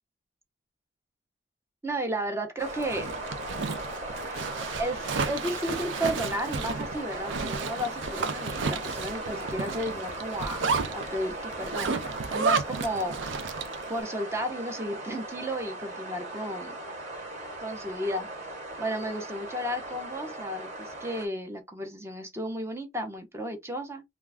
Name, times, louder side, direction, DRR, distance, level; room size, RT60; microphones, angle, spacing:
voice 1, 1.8-3.1 4.8-11.9 12.3-13.4 13.9-16.7 17.6-18.3 18.8-24.0, equal, 15° right, 0.5 m, -33 dB
sound 1, 2.6-21.3, right 2 dB, 40° right, 0.9 m, -38 dB
Zipper (clothing), 2.7-13.9, right 4 dB, 75° right, 0.5 m, -32 dB
2.4 x 2.2 x 3.3 m
head